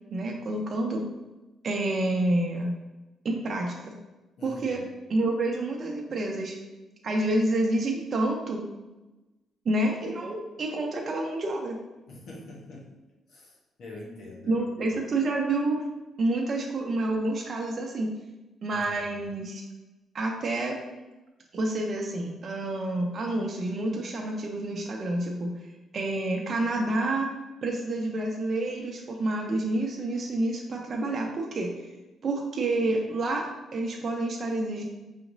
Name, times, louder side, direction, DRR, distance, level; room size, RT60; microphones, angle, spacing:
voice 1, 0.1-1.0 1.6-2.7 3.2-3.9 4.4-4.8 5.1-6.6 7.0-8.7 9.6-11.8 14.5-15.8 16.2-18.1 18.6-19.6 20.1-20.7 21.5-25.5 25.9-27.3 27.6-31.7 32.2-34.8, right 2 dB, 50° right, 0 dB, 0.6 m, -28 dB
voice 2, 4.4-4.8 12.1-12.9 13.3-14.9 18.7-19.3, left 2 dB, 65° left, -2 dB, 1.0 m, -45 dB
5.0 x 2.9 x 2.6 m, 1.1 s
cardioid pair, 90°, 0 cm